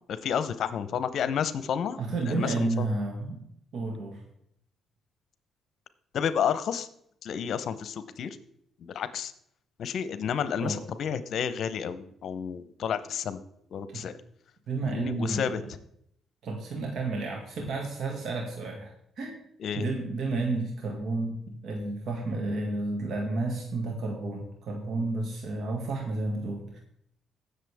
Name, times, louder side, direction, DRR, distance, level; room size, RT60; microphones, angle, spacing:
voice 1, 0.1-2.0 2.2-2.8 6.1-6.9 7.2-8.4 8.8-9.3 9.8-13.4 13.7-14.2 14.8-15.6 19.6-19.9, left 8 dB, 65° left, 13 dB, 0.8 m, -30 dB
voice 2, 2.0-3.4 3.7-4.2 10.6-10.8 13.9-14.0 14.7-15.6 16.4-19.4 19.8-26.8, right 3 dB, 65° right, 1 dB, 2.0 m, -31 dB
17.0 x 6.7 x 3.5 m, 0.71 s
cardioid pair, 90°, 0 cm